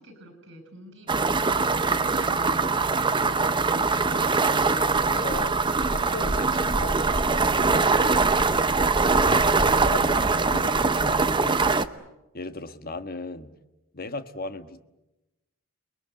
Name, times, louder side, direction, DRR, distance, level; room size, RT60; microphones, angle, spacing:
voice 1, 0.0-1.7, equal, 55° right, 8 dB, 6.5 m, -47 dB
sound 1, 1.1-11.9, right 4 dB, 20° right, 0.8 m, -22 dB
voice 2, 4.6-5.5 5.8-7.8 9.0-11.7 12.3-13.5 13.9-14.8, left 2 dB, 45° left, 10 dB, 1.4 m, -37 dB
30.0 x 21.0 x 7.8 m, 0.98 s
head